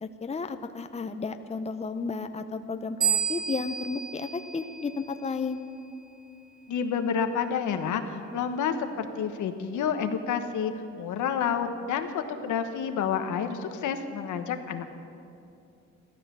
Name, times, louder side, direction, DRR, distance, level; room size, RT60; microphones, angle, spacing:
voice 1, 0.0-5.6, left 4 dB, 20° left, 8 dB, 0.8 m, -33 dB
sound 1, 3.0-5.5, right 8 dB, 30° right, 2.0 m, -31 dB
voice 2, 6.7-10.7 11.0-14.9, left 7 dB, 80° left, 7 dB, 1.2 m, -29 dB
15.0 x 13.5 x 6.9 m, 2.7 s
cardioid pair, 90°, 30 cm